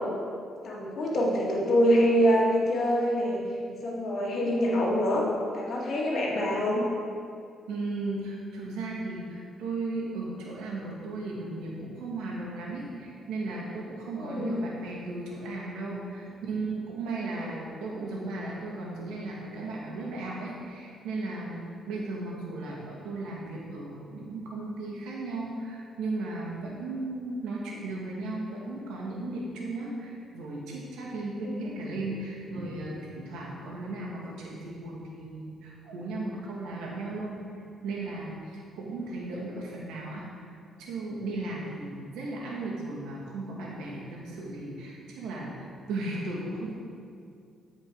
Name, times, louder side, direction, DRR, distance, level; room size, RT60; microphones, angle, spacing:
voice 1, 0.6-3.5 3.8-5.2 5.5-6.8 14.2-14.7 31.4-31.5, equal, 60° left, -3 dB, 2.0 m, -25 dB
voice 2, 7.7-37.4 37.8-40.5 40.8-46.7, right 2 dB, 90° right, -4 dB, 2.1 m, -36 dB
13.0 x 5.2 x 4.8 m, 2.4 s
cardioid pair, 90°, 0 cm